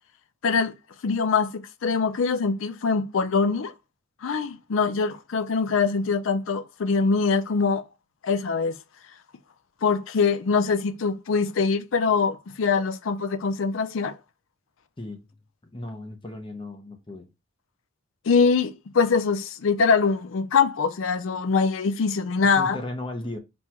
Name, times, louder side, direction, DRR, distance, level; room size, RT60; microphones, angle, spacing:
voice 1, 0.4-0.7 1.0-3.7 4.2-7.8 8.2-8.7 9.8-14.2 18.3-22.8, left 5 dB, 75° left, 0.5 m, -23 dB
voice 2, 15.0-15.3 15.6-17.3 22.4-23.4, left 1 dB, 25° left, 0.6 m, -36 dB
4.3 x 2.3 x 4.3 m
head